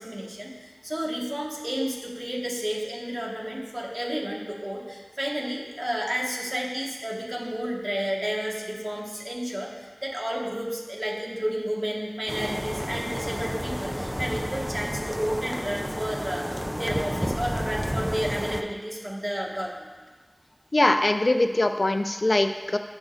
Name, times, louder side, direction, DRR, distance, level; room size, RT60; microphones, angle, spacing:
voice 1, 0.0-16.5 16.8-19.9 20.8-20.9, equal, 40° right, -2 dB, 1.4 m, -31 dB
sound 1, 12.3-18.6, equal, ahead, 0.4 m, -31 dB
voice 2, 20.7-22.8, left 2 dB, 75° left, 7 dB, 0.4 m, -22 dB
14.0 x 5.3 x 2.5 m, 1.3 s
wide cardioid pair, 40°, 0 cm